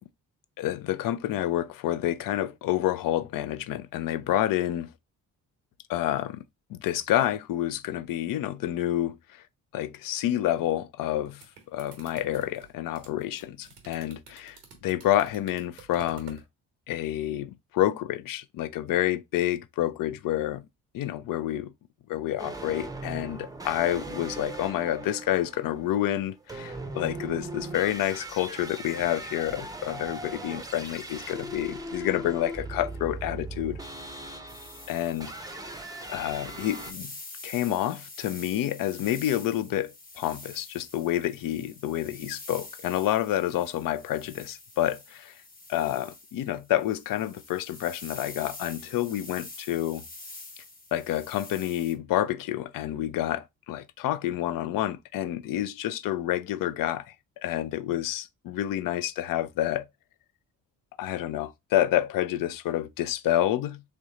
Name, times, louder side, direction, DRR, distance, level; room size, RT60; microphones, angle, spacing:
voice 1, 0.6-4.9 5.9-6.4 6.7-9.4 9.7-16.4 16.9-20.7 20.9-21.7 22.1-33.8 34.9-35.6 36.1-37.1 37.4-45.4 45.7-50.0 50.9-59.9 61.0-63.8, left 13 dB, 50° left, 0.5 m, -29 dB
sound 1, 11.1-16.5, right 6 dB, 90° right, 0.9 m, -51 dB
sound 2, 22.4-36.9, right 2 dB, 10° right, 0.7 m, -39 dB
sound 3, 34.5-51.9, left 3 dB, 20° left, 0.9 m, -46 dB
3.2 x 2.6 x 3.6 m
hypercardioid pair, 45°, 45 cm